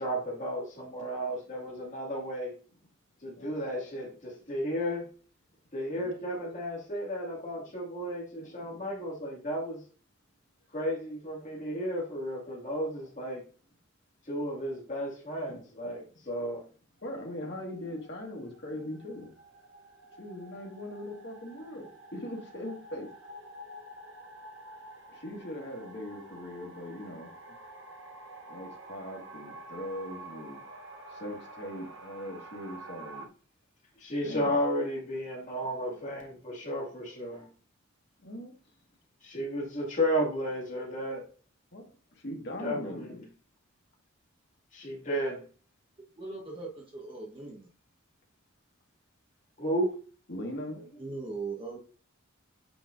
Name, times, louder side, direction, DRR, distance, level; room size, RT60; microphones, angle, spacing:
voice 1, 0.0-2.5 3.2-5.0 5.7-9.8 10.7-13.4 14.3-16.6 34.0-37.5 39.2-41.2 42.6-43.1 44.7-45.4 49.6-49.9, equal, 35° left, -2 dB, 2.1 m, -33 dB
voice 2, 8.4-8.9 15.5-15.6 17.0-19.3 20.2-23.1 25.1-27.3 28.5-30.6 31.1-33.3 34.2-34.6 38.2-38.5 41.7-41.8 42.2-43.2 50.3-50.8, left 1 dB, 55° left, 0 dB, 1.8 m, -40 dB
sound 1, 17.0-33.3, right 2 dB, 65° right, 1.0 m, -49 dB
voice 3, 46.2-47.7 51.0-51.8, right 3 dB, 25° right, -2 dB, 1.2 m, -39 dB
8.7 x 4.6 x 2.6 m, 0.39 s
head